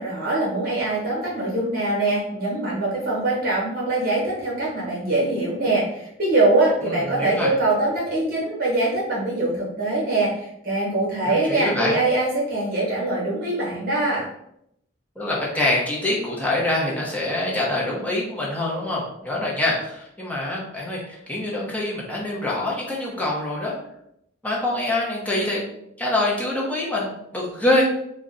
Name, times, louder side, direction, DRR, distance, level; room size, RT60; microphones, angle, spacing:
voice 1, 0.0-14.3, right 2 dB, 45° right, -5 dB, 1.0 m, -23 dB
voice 2, 6.9-7.5 11.2-11.9 15.2-23.7 24.4-25.6 26.0-27.8, left 1 dB, 5° left, -5 dB, 0.6 m, -25 dB
2.4 x 2.1 x 3.7 m, 0.77 s
head